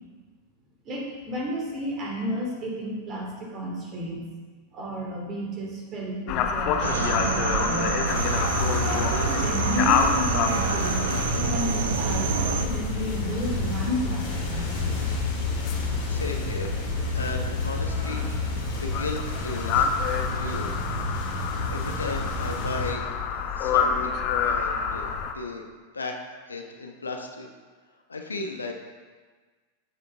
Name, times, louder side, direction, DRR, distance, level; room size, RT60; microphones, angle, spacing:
voice 1, 0.8-4.3 4.7-8.0 8.7-15.0, equal, 30° right, -2 dB, 3.1 m, -32 dB
sound 1, 6.3-25.3, left 7 dB, 40° left, 0.9 m, -29 dB
sound 2, 6.8-12.7, right 7 dB, 60° right, 0.7 m, -28 dB
sound 3, 8.0-22.9, left 2 dB, 60° left, 3.0 m, -30 dB
voice 2, 16.1-16.7 17.1-18.2 18.8-19.9 20.2-20.7 21.7-23.1 23.5-25.7 25.9-26.2 26.5-27.5 28.1-28.7, left 3 dB, 75° left, 3 dB, 1.0 m, -35 dB
13.5 x 7.0 x 3.5 m, 1.4 s
figure-of-eight pair, 90°, 0 cm